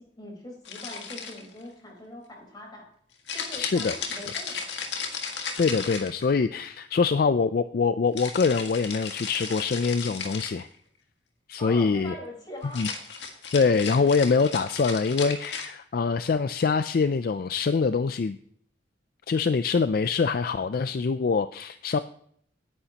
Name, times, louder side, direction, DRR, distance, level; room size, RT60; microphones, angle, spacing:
voice 1, 0.0-2.8 3.3-4.7 11.6-12.8, left 1 dB, 25° left, -1 dB, 4.3 m, -42 dB
sound 1, 0.6-1.6 3.3-6.5 8.2-10.6 12.6-15.7, left 5 dB, 75° left, 1.8 m, -35 dB
voice 2, 3.6-4.0 5.6-10.7 11.5-12.1 12.8-12.9 13.5-18.4 19.3-22.0, left 5 dB, 55° left, 11 dB, 0.4 m, -24 dB
18.0 x 10.0 x 2.9 m, 0.64 s
head